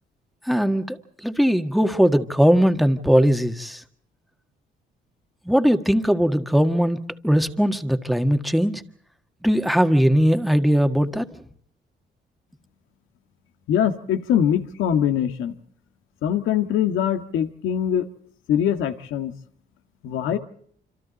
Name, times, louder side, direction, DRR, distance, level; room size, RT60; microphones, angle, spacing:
voice 1, 0.4-1.0 1.2-3.8 5.4-8.8 9.4-11.3, equal, ahead, 7 dB, 1.7 m, -19 dB
voice 2, 13.7-15.5 16.2-18.1 18.5-19.3 20.0-20.4, left 9 dB, 85° left, 7 dB, 1.7 m, -22 dB
27.0 x 26.5 x 4.1 m, 0.63 s
cardioid pair, 90°, 20 cm